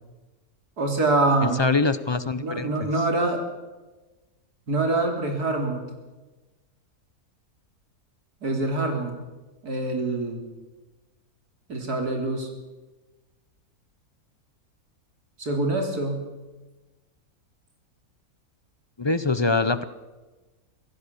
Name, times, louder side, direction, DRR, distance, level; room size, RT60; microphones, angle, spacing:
voice 1, 0.8-1.6 2.4-3.4 4.7-5.8 8.4-9.1 9.6-10.4 11.7-12.5 15.4-16.3, right 2 dB, 90° right, 3 dB, 3.9 m, -25 dB
voice 2, 1.4-2.9 19.0-19.8, left 3 dB, 25° left, 13 dB, 0.6 m, -24 dB
25.0 x 16.0 x 7.0 m, 1.2 s
omnidirectional pair, 1.6 m